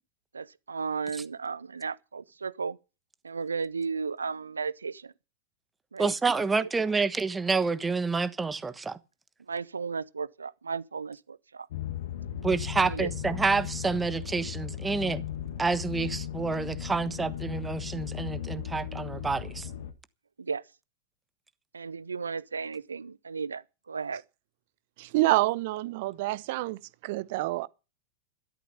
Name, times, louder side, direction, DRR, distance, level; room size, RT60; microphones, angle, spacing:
voice 1, 0.3-2.8 3.2-5.1 5.9-6.1 6.6-6.7 9.5-11.7 12.8-13.1 20.4-20.6 21.7-23.6 23.9-24.2, right 5 dB, 75° right, 0.8 m, -34 dB
voice 2, 6.0-9.0 12.4-15.2 15.6-19.7, right 4 dB, 10° right, 1.2 m, -28 dB
sound 1, 11.7-19.9, left 10 dB, 55° left, 1.9 m, -36 dB
voice 3, 25.0-27.7, right 18 dB, 50° right, 1.0 m, -27 dB
14.5 x 12.5 x 5.5 m
figure-of-eight pair, 90°, 0 cm